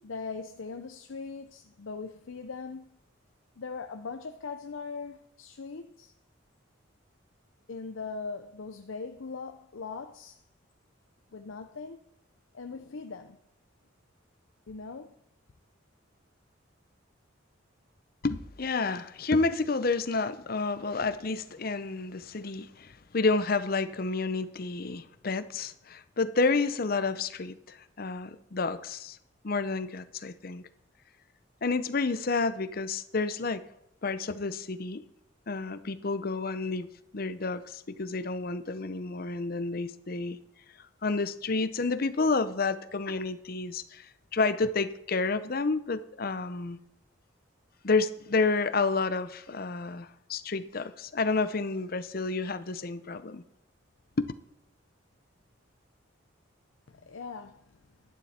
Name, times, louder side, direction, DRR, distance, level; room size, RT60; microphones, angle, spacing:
voice 1, 0.0-3.0 3.6-6.1 7.7-10.4 11.3-12.0 12.5-13.4 14.7-15.2 56.9-57.8, left 4 dB, 85° left, 0.6 m, -40 dB
voice 2, 18.2-29.2 29.4-30.6 31.6-33.6 34.0-35.0 35.5-36.9 37.1-40.4 41.0-46.8 47.8-53.4 54.2-54.3, left 3 dB, 50° left, 0.7 m, -30 dB
12.0 x 10.5 x 4.3 m
head